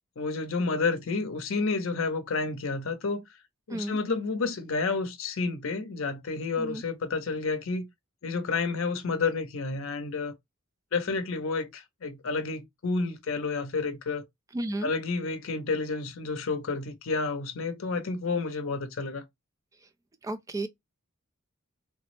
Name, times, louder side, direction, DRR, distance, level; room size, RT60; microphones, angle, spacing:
voice 1, 0.2-3.2 3.7-7.9 8.2-10.3 10.9-14.2 14.8-19.2, left 4 dB, 70° left, 0.6 m, -30 dB
voice 2, 14.5-14.9 20.2-20.7, right 1 dB, 15° right, 0.3 m, -32 dB
3.2 x 2.0 x 3.1 m
head